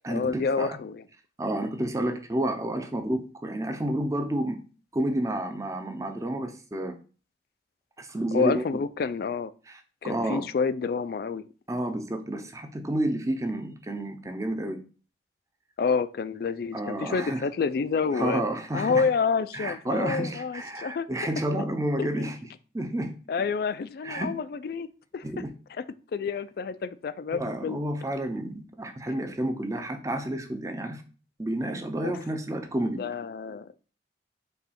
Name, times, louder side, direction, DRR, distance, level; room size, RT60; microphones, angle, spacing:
voice 1, 0.1-1.0 8.3-9.5 10.0-11.4 15.8-18.4 18.7-21.1 22.0-22.3 23.3-24.9 25.1-25.3 26.1-27.8 32.0-32.1 33.0-33.7, left 5 dB, 55° left, 0.3 m, -28 dB
voice 2, 1.4-4.6 4.9-7.0 8.0-8.6 9.7-10.4 11.7-14.8 16.7-17.4 18.1-19.1 19.5-22.4 22.7-23.2 24.0-24.3 25.2-25.5 27.3-31.0 31.4-33.0, right 1 dB, 20° right, 0.5 m, -30 dB
5.4 x 2.3 x 4.2 m
head